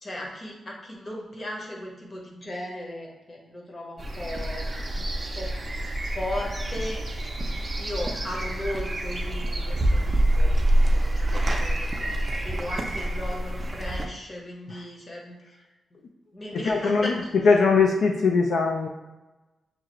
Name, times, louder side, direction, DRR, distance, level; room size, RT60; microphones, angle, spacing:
voice 1, 0.0-4.6 4.9-5.0 5.4-5.5 6.1-7.0 7.8-15.4 16.3-17.1, left 1 dB, 30° left, -2 dB, 0.9 m, -36 dB
sound 1, 4.0-14.1, right 1 dB, 25° right, 0.4 m, -26 dB
voice 2, 16.5-17.2 17.4-18.9, left 4 dB, 75° left, 2 dB, 0.3 m, -21 dB
6.4 x 2.4 x 3.0 m, 1.1 s
wide cardioid pair, 160°, 0 cm